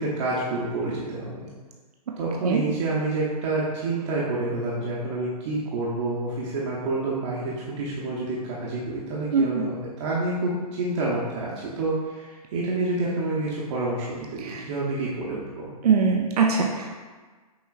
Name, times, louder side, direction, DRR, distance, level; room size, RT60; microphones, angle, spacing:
voice 1, 0.0-1.5 2.2-15.7, right 2 dB, 50° right, -6 dB, 0.8 m, -28 dB
voice 2, 9.3-9.7 14.4-14.6 15.8-17.0, right 5 dB, 80° right, 1 dB, 0.5 m, -22 dB
6.0 x 2.8 x 2.4 m, 1.4 s
hypercardioid pair, 145°, 20 cm